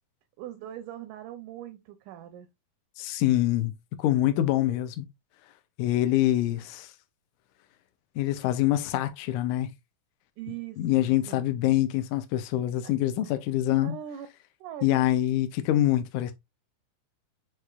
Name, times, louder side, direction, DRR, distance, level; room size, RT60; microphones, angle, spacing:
voice 1, 0.4-2.5 10.4-10.8 11.3-11.4 12.8-12.9 13.8-14.3 14.6-15.0, right 11 dB, 80° right, 1.8 m, -40 dB
voice 2, 3.0-3.7 4.0-5.1 5.8-6.9 8.2-9.7 10.8-14.0 14.8-16.3, left 14 dB, 85° left, 1.8 m, -25 dB
6.6 x 3.1 x 2.2 m
omnidirectional pair, 4.0 m